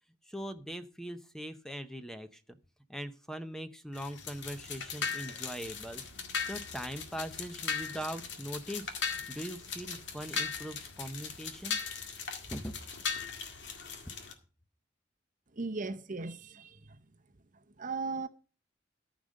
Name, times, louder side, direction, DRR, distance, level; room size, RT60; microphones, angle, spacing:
voice 1, 0.2-2.6 2.9-6.0 6.4-8.9 9.3-11.8 12.5-12.8, equal, 5° left, 0.6 m, -41 dB
sound 1, 3.9-14.3, left 6 dB, 70° left, 1.9 m, -38 dB
voice 2, 15.5-17.0 17.8-18.3, right 4 dB, 45° right, 0.8 m, -37 dB
14.0 x 5.1 x 6.4 m
head